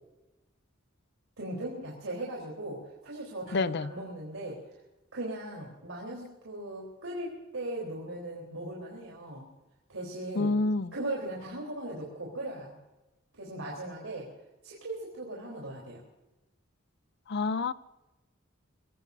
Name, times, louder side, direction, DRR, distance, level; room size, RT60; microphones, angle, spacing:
voice 1, 1.4-4.6 5.1-9.5 9.9-10.5 10.9-12.8 13.4-14.3 14.6-16.0, right 1 dB, 85° right, 3.8 m, -38 dB
voice 2, 3.5-3.9 10.4-10.9 17.3-17.7, left 3 dB, 55° left, 0.6 m, -28 dB
23.5 x 16.5 x 2.7 m
head